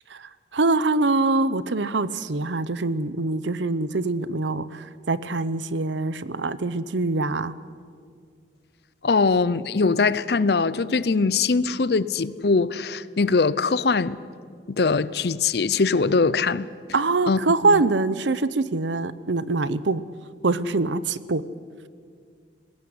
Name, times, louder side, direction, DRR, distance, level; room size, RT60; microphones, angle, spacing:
voice 1, 0.1-7.5 16.9-20.0 20.4-21.4, right 3 dB, 85° right, 0.8 m, -24 dB
voice 2, 9.0-14.2 14.7-16.7 17.3-17.4 17.7-17.8, left 4 dB, 60° left, 0.6 m, -22 dB
20.5 x 17.0 x 9.6 m
head